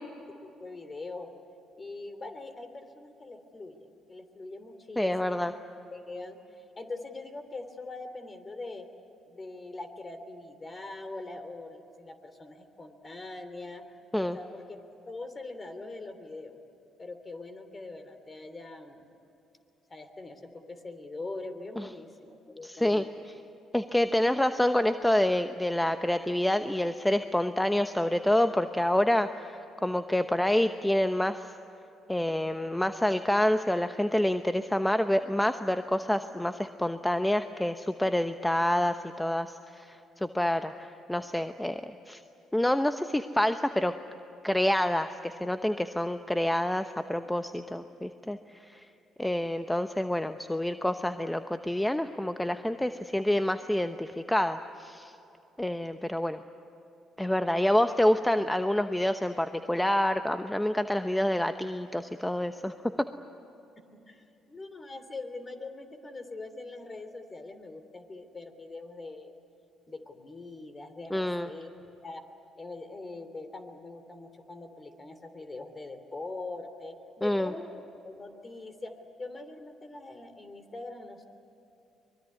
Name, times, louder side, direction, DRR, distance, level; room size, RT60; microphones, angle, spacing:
voice 1, 0.4-1.3 1.8-5.4 5.9-6.4 6.8-8.9 9.3-13.8 14.2-14.8 15.1-16.6 17.0-19.0 19.9-23.1 63.8-69.3 69.9-72.2 72.6-77.7 78.0-81.2, left 2 dB, 30° left, 9 dB, 3.2 m, -42 dB
voice 2, 5.0-5.5 14.1-14.4 21.8-21.9 22.6-23.0 23.7-29.5 29.8-31.5 32.1-42.2 42.5-43.9 44.4-48.9 49.2-55.1 55.6-56.4 57.2-63.1 71.1-71.5 77.2-77.5, left 1 dB, 10° left, 9 dB, 0.9 m, -27 dB
24.0 x 21.5 x 9.7 m, 2.9 s
hypercardioid pair, 55°, 0 cm